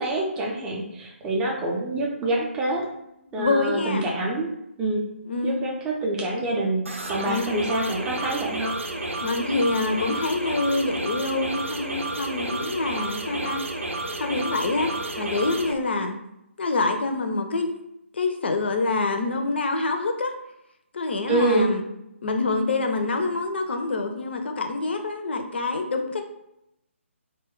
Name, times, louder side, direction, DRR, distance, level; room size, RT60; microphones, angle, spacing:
voice 1, 0.0-2.9 3.3-4.5 4.8-5.0 5.4-8.8 21.3-21.7, right 2 dB, 10° right, -1 dB, 0.4 m, -26 dB
voice 2, 3.3-4.1 5.3-5.6 7.3-7.5 9.2-13.6 14.2-16.1 16.6-17.7 18.1-20.3 20.9-21.8 22.2-26.2, left 3 dB, 55° left, 5 dB, 0.4 m, -26 dB
sound 1, 6.9-15.7, right 2 dB, 70° right, 0.5 m, -31 dB
2.2 x 2.1 x 3.6 m, 0.83 s
figure-of-eight pair, 140°, 7 cm